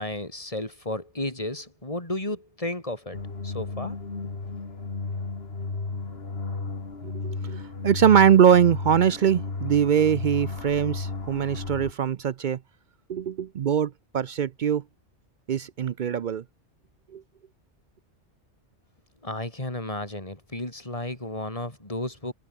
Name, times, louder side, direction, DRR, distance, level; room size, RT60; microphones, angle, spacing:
voice 1, 0.0-3.2 3.4-4.0 19.2-22.3, left 1 dB, 30° left, 4.7 m, -33 dB
sound 1, 3.1-11.9, left 3 dB, 60° left, 2.6 m, -33 dB
voice 2, 7.0-12.6 13.1-14.8 15.5-16.4 17.1-17.2, right 8 dB, 55° right, 0.6 m, -22 dB
omnidirectional pair, 1.2 m